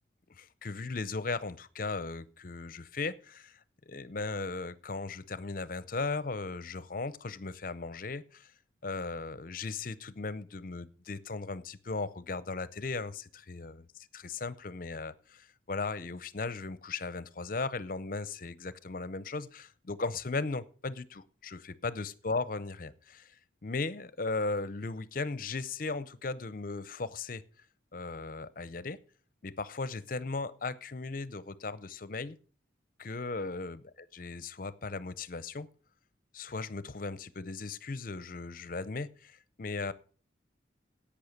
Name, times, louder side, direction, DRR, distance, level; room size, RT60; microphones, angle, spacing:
voice 1, 0.3-8.5 8.8-13.8 14.2-27.4 27.9-29.0 29.4-32.4 33.0-35.7 36.3-39.9, left 3 dB, 50° left, 0.6 m, -37 dB
11.0 x 8.6 x 6.6 m
head